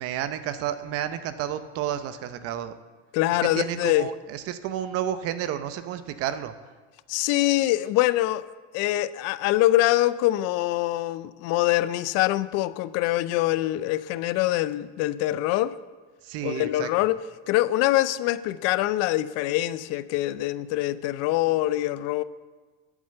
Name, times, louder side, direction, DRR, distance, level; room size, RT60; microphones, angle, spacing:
voice 1, 0.0-2.8 3.4-6.5 16.2-16.9, right 10 dB, 55° right, 0.7 m, -31 dB
voice 2, 3.1-4.1 7.1-8.4 8.7-15.8 16.4-22.2, left 16 dB, 60° left, 0.5 m, -24 dB
8.4 x 7.3 x 6.6 m
cardioid pair, 130°, 29 cm